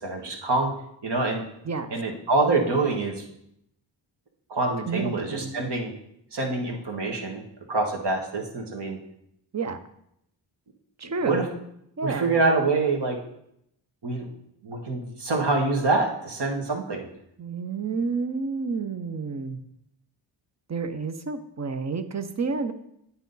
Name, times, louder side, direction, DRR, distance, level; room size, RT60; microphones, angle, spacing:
voice 1, 0.0-0.7 1.0-1.4 1.9-3.2 4.5-5.9 6.3-7.4 7.7-9.0 11.3-11.4 12.0-13.2 14.0-14.3 14.6-17.1, right 3 dB, 60° right, 2 dB, 1.5 m, -25 dB
voice 2, 4.9-5.7 9.5-9.8 11.0-11.5 12.0-12.4 17.4-19.6 20.7-22.7, right 4 dB, 35° right, 9 dB, 0.7 m, -30 dB
9.0 x 4.1 x 4.0 m, 0.76 s
supercardioid pair, 45°, 47 cm